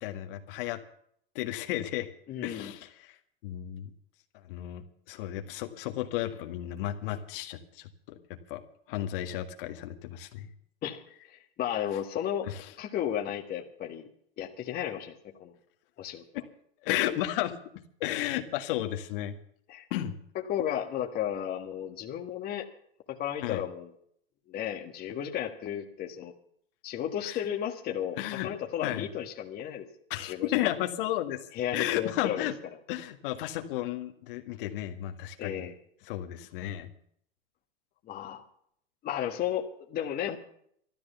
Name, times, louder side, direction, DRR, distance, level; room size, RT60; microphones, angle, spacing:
voice 1, 0.0-0.8 1.4-2.1 2.4-3.2 3.4-3.9 4.4-8.6 8.9-10.5 12.5-12.7 16.8-17.6 18.0-19.3 19.9-20.1 23.4-23.6 27.2-27.4 28.2-28.5 28.8-29.1 30.1-31.4 31.7-32.5 32.9-35.7 36.1-36.9, left 13 dB, 60° left, 6 dB, 1.8 m, -33 dB
voice 2, 2.3-2.7 10.8-11.0 11.3-12.5 12.8-14.1 14.4-15.5 16.0-16.4 19.7-19.9 20.3-22.7 23.1-23.9 24.5-26.3 26.8-29.9 30.2-30.7 31.5-32.5 35.4-35.8 38.1-38.4 39.0-40.4, left 10 dB, 30° left, 3 dB, 1.6 m, -34 dB
13.0 x 12.5 x 6.8 m, 0.66 s
supercardioid pair, 135°, 30 cm